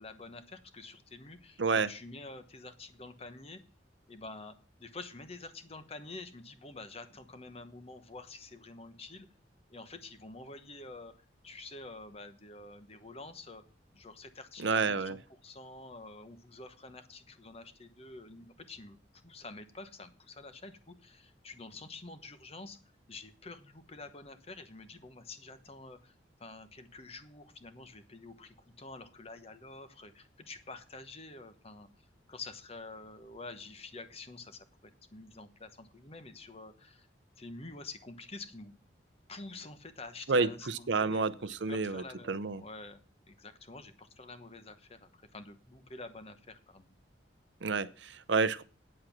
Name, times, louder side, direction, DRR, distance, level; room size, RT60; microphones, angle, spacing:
voice 1, 0.0-3.6 4.1-9.3 9.7-11.1 11.4-13.6 13.9-19.0 19.2-22.8 23.1-26.1 26.4-31.9 32.3-37.1 37.4-38.7 39.3-43.0 43.3-47.0, left 3 dB, 35° left, 10 dB, 1.1 m, -48 dB
voice 2, 1.6-1.9 14.6-15.2 40.3-42.6 47.6-48.6, right 4 dB, 85° right, 15 dB, 0.6 m, -30 dB
8.9 x 7.7 x 5.9 m, 0.37 s
head